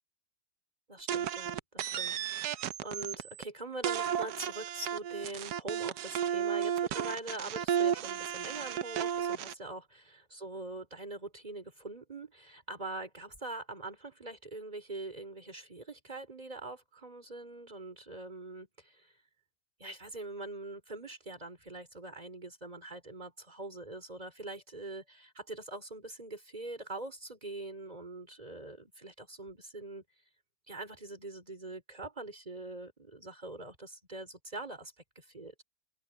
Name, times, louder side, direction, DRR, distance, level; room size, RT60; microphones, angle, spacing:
voice 1, 0.9-19.1 19.8-30.0 30.7-35.6, right 2 dB, 25° right, 4.2 m, -43 dB
sound 1, 1.1-3.4 3.8-9.5, right 9 dB, 80° right, 1.3 m, -33 dB
omnidirectional pair, 1.7 m